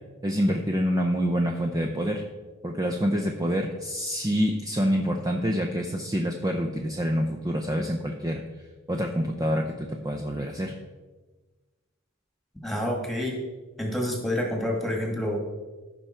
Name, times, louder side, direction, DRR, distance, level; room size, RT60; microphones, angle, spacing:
voice 1, 0.2-2.2 2.6-8.4 8.9-10.7, equal, 20° right, 3 dB, 0.6 m, -26 dB
voice 2, 12.6-13.4 13.8-15.5, left 1 dB, ahead, 0 dB, 1.8 m, -28 dB
14.5 x 5.7 x 4.5 m, 1.3 s
head